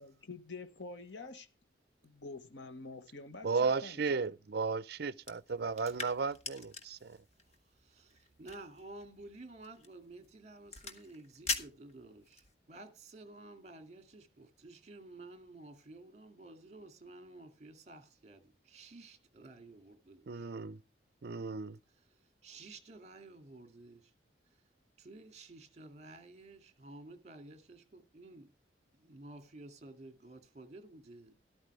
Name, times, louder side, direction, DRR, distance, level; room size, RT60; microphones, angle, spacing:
voice 1, 0.0-1.5 2.0-4.0, left 3 dB, 70° left, 1.2 m, -47 dB
voice 2, 3.4-6.6 20.3-20.8 21.2-21.8, right 4 dB, 55° right, 0.5 m, -34 dB
sound 1, 5.2-12.5, left 4 dB, 35° left, 1.4 m, -44 dB
voice 3, 7.4-20.5 22.4-24.1 25.0-28.5 28.9-31.3, right 2 dB, 35° right, 2.2 m, -52 dB
13.0 x 12.5 x 3.3 m
head